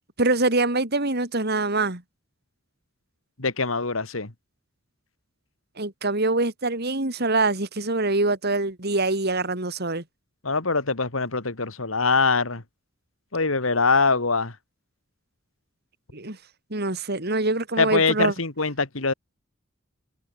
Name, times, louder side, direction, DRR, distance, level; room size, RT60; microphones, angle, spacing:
voice 1, 0.2-2.0 5.8-10.0 16.1-16.4 16.7-18.3, right 2 dB, 50° right, 3.5 m, -24 dB
voice 2, 3.4-4.3 10.4-12.6 13.3-14.6 17.8-19.1, left 4 dB, 85° left, 2.4 m, -23 dB
head